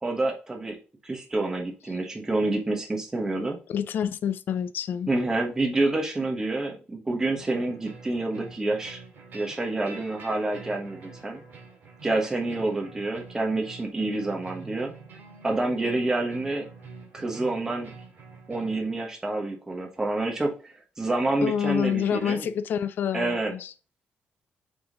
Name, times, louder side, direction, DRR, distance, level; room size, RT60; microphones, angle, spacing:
voice 1, 0.0-0.8 1.0-3.6 5.1-9.0 9.3-11.4 12.0-14.9 15.4-16.7 17.1-17.9 18.5-22.4 23.1-23.5, right 2 dB, 15° right, 1.3 m, -28 dB
voice 2, 3.7-5.1 21.4-23.7, left 8 dB, 60° left, 0.5 m, -27 dB
sound 1, 7.3-18.8, right 4 dB, 50° right, 2.9 m, -46 dB
6.8 x 3.7 x 3.8 m
cardioid pair, 160°, 4 cm